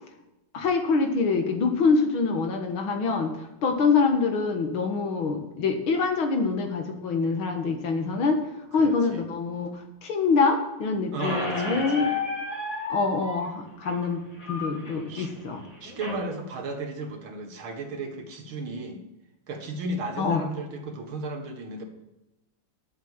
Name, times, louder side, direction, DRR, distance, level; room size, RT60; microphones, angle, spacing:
voice 1, 0.5-8.4 8.7-12.1 12.9-14.2 14.5-15.6 20.2-20.4, left 4 dB, 90° left, 5 dB, 2.4 m, -25 dB
voice 2, 8.8-9.2 11.1-12.1 15.1-15.3 15.8-19.0 19.5-21.9, right 2 dB, 90° right, 4 dB, 2.5 m, -34 dB
Squeak, 11.2-16.2, left 3 dB, 65° left, 4.0 m, -33 dB
11.5 x 7.3 x 7.3 m, 0.98 s
omnidirectional pair, 2.2 m